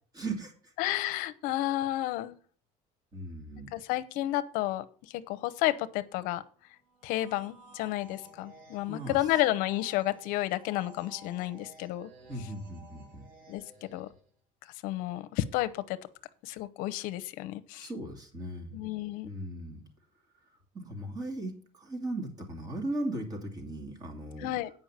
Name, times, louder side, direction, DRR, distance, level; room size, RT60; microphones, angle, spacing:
voice 1, 0.2-0.7 3.1-3.7 8.9-9.2 12.3-13.3 17.8-18.8 19.2-19.8 20.7-24.5, right 1 dB, 25° right, 3 dB, 2.4 m, -37 dB
voice 2, 0.8-2.4 3.7-6.4 7.0-12.1 13.5-14.1 14.8-16.0 16.4-17.9 18.7-19.3 24.4-24.7, left 15 dB, 70° left, 11 dB, 0.8 m, -31 dB
sound 1, 6.9-14.3, right 1 dB, 70° right, 2.3 m, -54 dB
8.8 x 5.4 x 7.3 m, 0.43 s
cardioid pair, 145°, 15 cm